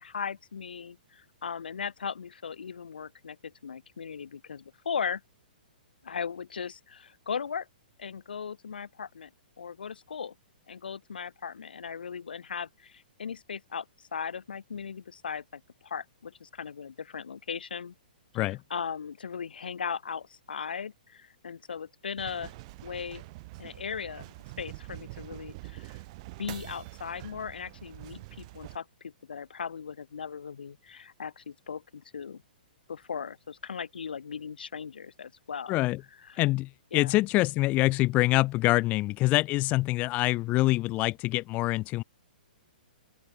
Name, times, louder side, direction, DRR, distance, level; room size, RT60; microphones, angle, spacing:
voice 1, 0.0-5.2 6.0-7.7 8.0-9.3 9.6-10.3 10.7-13.8 14.1-17.9 18.3-22.5 22.8-23.2 23.6-26.0 26.4-32.4 32.9-35.8 36.3-36.4 36.9-37.1, left 6 dB, 80° left, 5.1 m, -38 dB
sound 1, 22.2-28.8, right 22 dB, 45° right, 2.3 m, -45 dB
voice 2, 35.7-36.0 36.4-42.0, left 19 dB, 30° left, 1.0 m, -25 dB
open air
hypercardioid pair, 130°, 5 cm